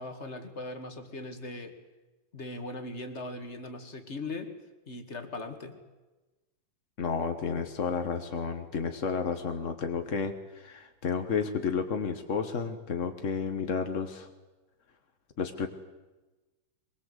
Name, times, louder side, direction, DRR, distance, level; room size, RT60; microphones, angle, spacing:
voice 1, 0.0-1.8 2.3-4.5 4.9-5.8, left 2 dB, 25° left, 6 dB, 2.0 m, -39 dB
voice 2, 7.0-14.3 15.4-15.7, left 5 dB, 60° left, 6 dB, 0.8 m, -31 dB
23.5 x 22.5 x 8.2 m, 1.1 s
omnidirectional pair, 3.5 m